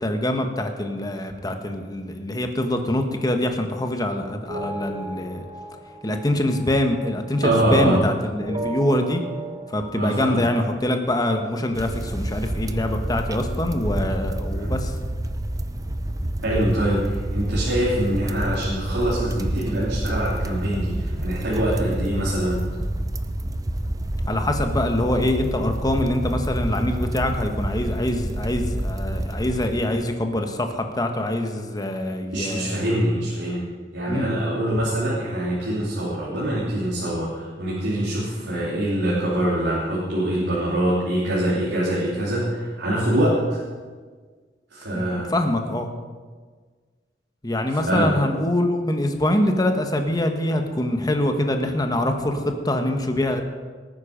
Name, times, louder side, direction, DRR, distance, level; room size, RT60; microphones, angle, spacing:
voice 1, 0.0-5.4 6.0-9.2 9.7-14.9 24.3-32.8 34.1-34.3 44.9-45.0 45.3-45.9 47.4-53.4, left 1 dB, 20° left, 5 dB, 1.3 m, -24 dB
sound 1, 4.5-8.1 8.4-10.1, right 2 dB, 35° right, 1.5 m, -36 dB
voice 2, 7.4-8.0 9.9-10.5 14.5-14.7 16.4-22.6 32.3-33.6 33.9-43.6 44.7-45.3 47.7-48.1, right 1 dB, 85° right, -7 dB, 3.0 m, -24 dB
sound 2, 11.7-30.1, right 1 dB, 20° right, 0.6 m, -28 dB
19.0 x 9.4 x 5.2 m, 1.5 s
head